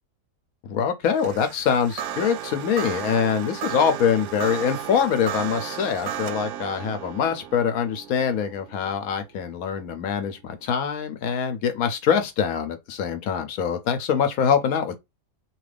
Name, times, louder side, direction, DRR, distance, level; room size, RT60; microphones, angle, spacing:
voice 1, 0.7-15.0, left 7 dB, 65° left, 1.0 m, -24 dB
sound 1, 1.1-10.4, right 10 dB, 70° right, 0.9 m, -35 dB
2.9 x 2.5 x 3.2 m
omnidirectional pair, 1.8 m